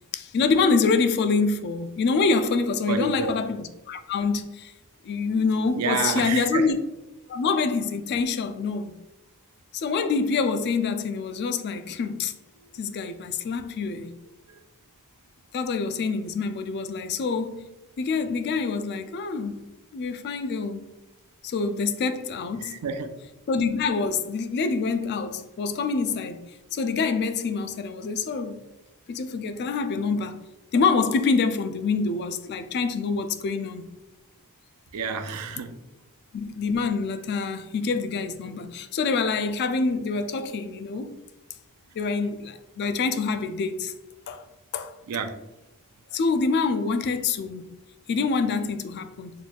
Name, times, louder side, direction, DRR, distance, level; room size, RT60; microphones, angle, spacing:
voice 1, 0.1-4.7 5.0-6.8 7.3-9.0 9.7-12.3 12.7-14.2 15.5-17.7 18.0-19.6 19.9-20.9 21.4-22.8 23.5-28.6 29.1-30.4 30.7-33.9 36.3-41.1 41.9-43.9 44.3-44.4 44.7-45.0 46.1-47.7 48.1-49.3, left 4 dB, 50° left, 0.3 m, -26 dB
voice 2, 2.9-3.3 5.8-6.7 14.5-14.6 22.6-23.1 34.9-35.8 45.1-45.3, right 5 dB, 85° right, 0.4 m, -29 dB
4.0 x 3.1 x 2.3 m
head